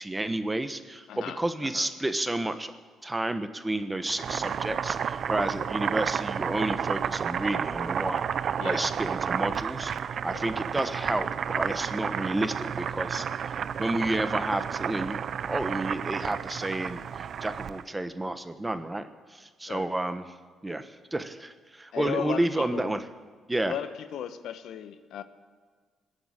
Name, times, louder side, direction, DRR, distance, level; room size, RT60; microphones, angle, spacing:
voice 1, 0.0-2.7 3.0-9.9 10.2-11.3 11.5-13.5 13.8-20.3 20.6-23.0 23.5-23.7, right 1 dB, 15° right, 10 dB, 1.2 m, -31 dB
voice 2, 1.1-1.9 8.6-8.9 10.3-10.5 19.7-19.9 21.9-22.9 23.6-25.2, left 9 dB, 75° left, 11 dB, 0.9 m, -36 dB
Boiling, 4.0-17.8, right 8 dB, 60° right, 0.5 m, -31 dB
20.0 x 8.0 x 9.0 m, 1.5 s
supercardioid pair, 70°, 0 cm